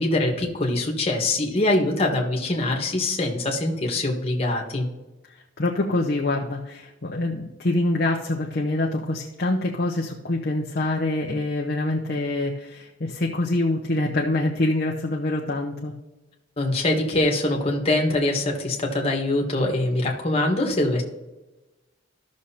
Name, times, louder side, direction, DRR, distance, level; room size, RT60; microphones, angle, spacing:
voice 1, 0.0-4.9 16.6-21.0, left 2 dB, 30° left, 1 dB, 1.4 m, -23 dB
voice 2, 5.6-15.9, left 2 dB, 50° left, -1 dB, 0.7 m, -25 dB
14.0 x 6.3 x 2.8 m, 1.1 s
head